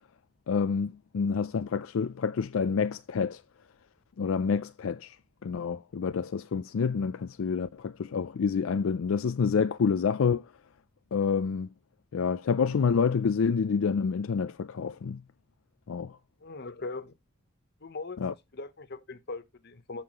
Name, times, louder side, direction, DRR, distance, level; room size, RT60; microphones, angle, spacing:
voice 1, 0.5-3.4 4.2-5.2 5.4-10.5 11.1-11.7 12.1-15.2 15.9-16.2 18.2-18.3, left 5 dB, 75° left, 0.4 m, -28 dB
voice 2, 16.4-17.1 17.8-18.2 18.5-20.0, left 3 dB, 55° left, 0.9 m, -40 dB
14.0 x 5.6 x 3.0 m
head